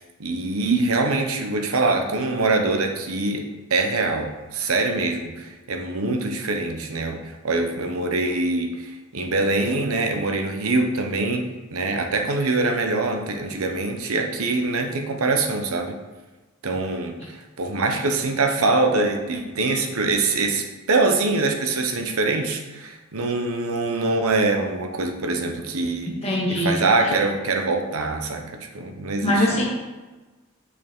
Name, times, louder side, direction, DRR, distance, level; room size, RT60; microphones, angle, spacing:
voice 1, 0.2-15.9 16.6-26.1 26.5-28.4 28.7-29.6, right 3 dB, 80° right, 4 dB, 0.8 m, -24 dB
voice 2, 26.2-26.8 29.2-29.6, left 1 dB, 30° left, -3 dB, 1.7 m, -21 dB
6.6 x 5.5 x 3.7 m, 1.2 s
head